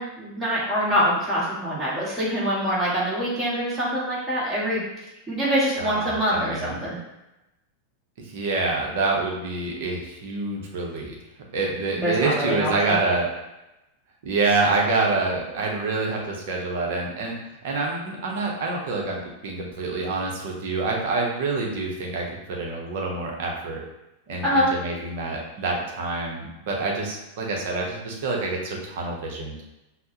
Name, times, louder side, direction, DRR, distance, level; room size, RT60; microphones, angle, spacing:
voice 1, 0.0-4.8 5.3-7.0 11.9-13.0 24.4-24.7, equal, 20° right, -6 dB, 1.5 m, -24 dB
voice 2, 5.8-6.9 8.3-11.2 11.5-13.3 14.2-23.8 24.3-29.6, right 3 dB, 50° right, -1 dB, 0.8 m, -27 dB
5.5 x 2.1 x 2.8 m, 0.94 s
figure-of-eight pair, 90°, 0 cm